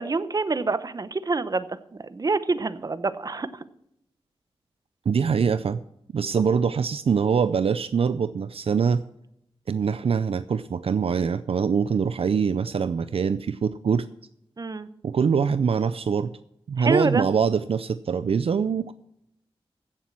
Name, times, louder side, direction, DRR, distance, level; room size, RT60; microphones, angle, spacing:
voice 1, 0.0-1.7 2.1-3.5 14.6-14.9 16.8-17.3, right 3 dB, 35° right, 13 dB, 0.8 m, -26 dB
voice 2, 5.1-5.8 6.1-9.0 9.7-14.1 15.0-16.3 16.7-18.9, right 6 dB, 65° right, 13 dB, 0.5 m, -23 dB
15.5 x 7.4 x 6.0 m, 0.77 s
wide cardioid pair, 120°, 10 cm